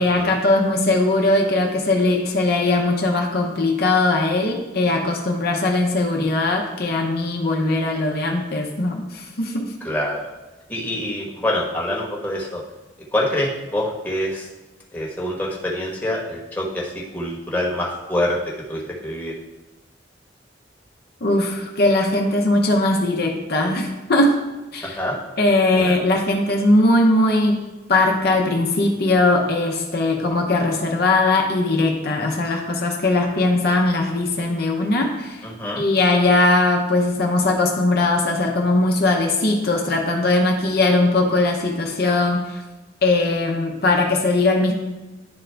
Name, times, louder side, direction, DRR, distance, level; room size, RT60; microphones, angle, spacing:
voice 1, 0.0-9.7 21.2-24.4 24.7-25.0 25.4-35.4 35.8-42.6 43.0-44.7, left 2 dB, 55° left, 1 dB, 0.8 m, -20 dB
voice 2, 9.8-10.2 10.7-12.6 13.1-14.4 14.9-18.4 18.7-19.3 25.0-25.2 25.7-25.9 35.4-35.8, left 1 dB, 10° left, -3 dB, 1.2 m, -25 dB
10.5 x 3.8 x 3.4 m, 1.1 s
head